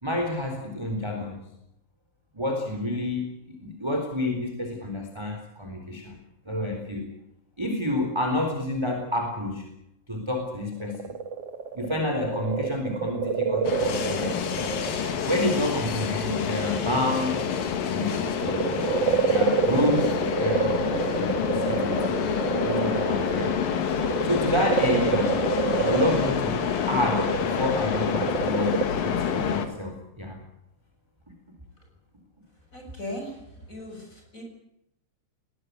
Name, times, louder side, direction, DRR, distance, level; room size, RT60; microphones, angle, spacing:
voice 1, 0.0-1.4 2.3-6.2 6.5-7.1 7.6-9.6 10.1-11.1 11.7-14.4 15.3-17.4 17.9-18.6 19.2-20.9 21.2-22.2 22.6-23.6 24.2-25.4 25.8-30.4, left 1 dB, 5° right, 3 dB, 3.5 m, -29 dB
sound 1, 10.4-15.5 16.0-17.7 18.1-28.8, right 6 dB, 55° right, 2.2 m, -28 dB
sound 2, 13.6-29.7, left 7 dB, 75° left, 3.8 m, -27 dB
voice 2, 32.7-33.4 33.7-34.1 34.3-34.4, left 1 dB, 20° left, 3 dB, 7.0 m, -37 dB
20.5 x 20.0 x 9.6 m, 0.81 s
omnidirectional pair, 4.0 m